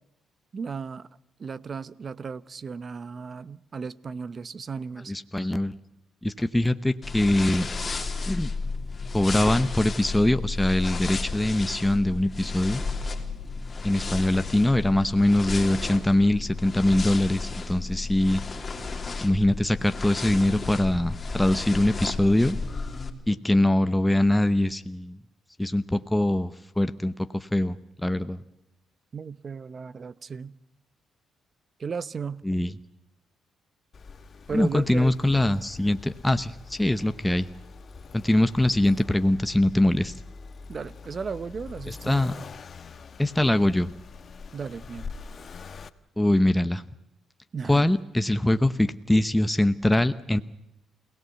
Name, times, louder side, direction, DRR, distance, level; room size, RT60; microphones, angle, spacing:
voice 1, 0.5-1.1 1.4-5.1 29.1-30.6 31.8-32.5 34.5-35.2 40.7-42.3 44.5-45.1 47.5-47.9, right 5 dB, 40° right, 0.9 m, -35 dB
voice 2, 5.1-5.7 6.2-7.7 8.3-8.5 9.1-12.8 13.8-18.4 19.2-22.6 23.3-25.2 25.6-28.4 32.4-32.7 34.5-37.5 38.1-40.1 41.9-42.3 43.2-43.9 46.2-46.8 47.7-50.4, left 1 dB, 10° left, 0.9 m, -23 dB
sound 1, 7.0-23.1, left 4 dB, 30° left, 3.1 m, -33 dB
Accelerating revving vroom, 33.9-45.9, left 5 dB, 45° left, 1.2 m, -44 dB
28.5 x 17.5 x 8.2 m
cardioid pair, 90°, 0 cm